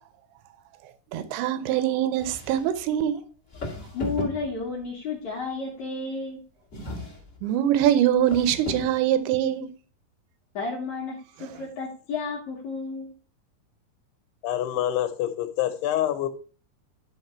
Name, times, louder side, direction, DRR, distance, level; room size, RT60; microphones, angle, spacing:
voice 1, 1.1-3.2 7.4-9.7, right 10 dB, 80° right, 2.7 m, -23 dB
sound 1, 2.2-2.8 3.5-4.9 6.7-7.4 8.2-9.0, left 1 dB, 25° left, 1.9 m, -36 dB
voice 2, 3.9-6.4 10.5-13.1, left 4 dB, 60° left, 2.1 m, -32 dB
voice 3, 14.4-16.3, left 12 dB, 80° left, 2.9 m, -26 dB
11.0 x 3.9 x 4.3 m
omnidirectional pair, 4.7 m